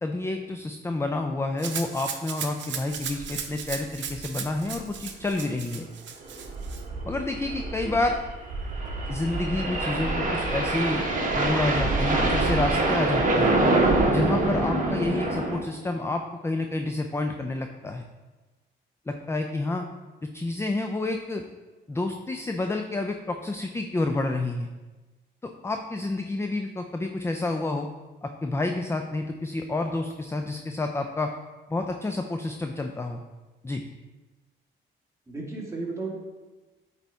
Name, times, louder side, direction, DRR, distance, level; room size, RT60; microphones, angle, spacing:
voice 1, 0.0-5.9 7.0-8.2 9.1-11.1 11.3-13.5 14.1-18.1 19.1-19.8 20.3-21.4 21.9-24.7 25.4-27.9 28.2-31.3 31.7-33.2 33.6-33.8, left 2 dB, 15° left, 5 dB, 0.4 m, -29 dB
Rattle (instrument), 1.6-6.8, right 7 dB, 65° right, 0.8 m, -36 dB
sound 1, 3.2-3.4 3.6-3.7 4.1-4.2 4.7-4.9 6.3-15.6, right 2 dB, 40° right, 1.2 m, -25 dB
voice 2, 35.3-36.1, right 3 dB, 15° right, -3 dB, 1.9 m, -34 dB
8.6 x 4.0 x 3.5 m, 1.2 s
cardioid pair, 90°, 20 cm